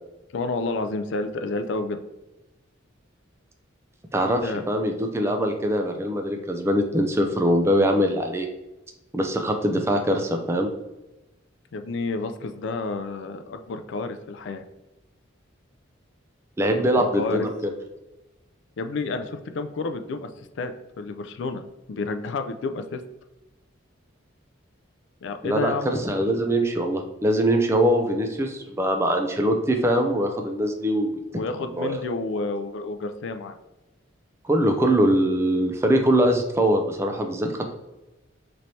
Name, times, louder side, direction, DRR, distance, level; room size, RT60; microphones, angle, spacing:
voice 1, 0.3-2.0 4.4-4.7 11.7-14.6 17.0-17.5 18.8-21.6 21.9-23.0 25.2-25.9 31.3-33.5, left 3 dB, 60° left, 8 dB, 0.4 m, -30 dB
voice 2, 4.1-8.5 9.1-10.7 16.6-17.7 25.4-31.2 31.7-32.0 34.4-37.5, equal, 15° right, 4 dB, 0.3 m, -22 dB
4.4 x 3.1 x 2.7 m, 1.0 s
head